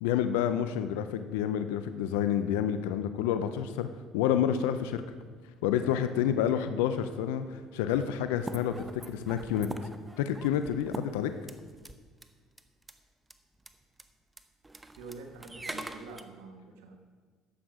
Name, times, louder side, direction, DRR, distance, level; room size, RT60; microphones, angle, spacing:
voice 1, 0.0-3.9 4.1-5.0 5.6-9.7 10.2-11.3, left 9 dB, 80° left, 10 dB, 0.5 m, -29 dB
sound 1, 8.4-11.9 12.2-12.3 12.6-12.9 13.3-13.4 13.6-13.7 14.0-14.1 14.4-16.2, right 2 dB, 15° right, 0.8 m, -43 dB
voice 2, 15.0-17.0, right 3 dB, 80° right, 4 dB, 1.4 m, -46 dB
12.0 x 8.0 x 4.9 m, 1.5 s
hypercardioid pair, 65°, 0 cm